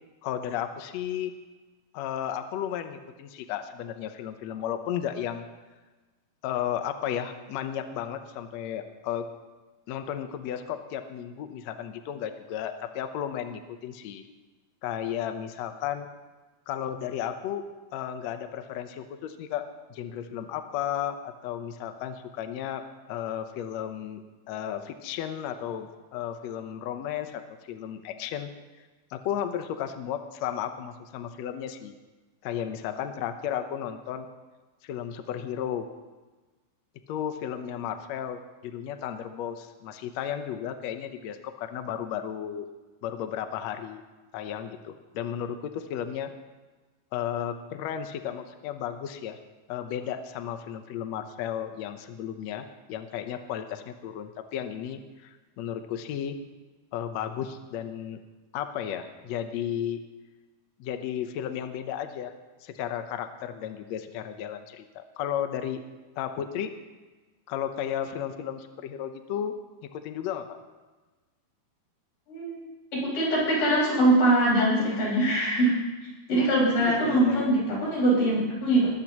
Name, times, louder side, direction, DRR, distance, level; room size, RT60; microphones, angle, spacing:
voice 1, 0.2-1.4 1.9-5.4 6.4-9.3 9.9-14.2 14.8-16.1 16.7-17.6 17.9-19.6 19.9-22.8 23.1-24.2 24.5-27.4 27.7-28.5 29.1-31.9 32.4-34.3 34.8-35.8 37.1-42.6 43.0-44.0 44.3-46.3 47.1-49.4 49.7-56.4 56.9-58.2 58.5-60.0 60.8-62.3 62.6-65.8 66.2-66.7 67.5-69.5 69.9-70.6 76.4-76.5 76.8-77.5, left 9 dB, 90° left, 7 dB, 1.5 m, -34 dB
voice 2, 72.3-75.8 76.3-78.9, right 1 dB, 60° left, -5 dB, 7.0 m, -23 dB
20.5 x 14.5 x 3.0 m, 1.2 s
omnidirectional pair, 4.4 m